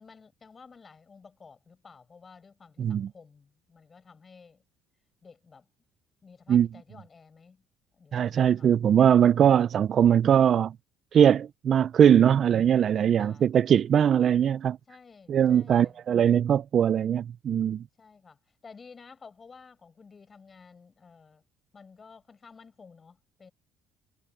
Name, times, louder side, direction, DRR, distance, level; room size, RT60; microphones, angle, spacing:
voice 1, 0.0-4.6 5.2-5.7 6.2-7.6 7.9-8.7 11.2-11.4 13.2-13.5 14.9-16.1 18.0-21.4 21.7-23.5, left 5 dB, 25° left, 6.4 m, -53 dB
voice 2, 2.8-3.1 6.5-6.7 8.1-10.7 11.1-14.8 15.3-17.8, right 9 dB, 45° right, 0.4 m, -21 dB
cardioid pair, 130°, 0 cm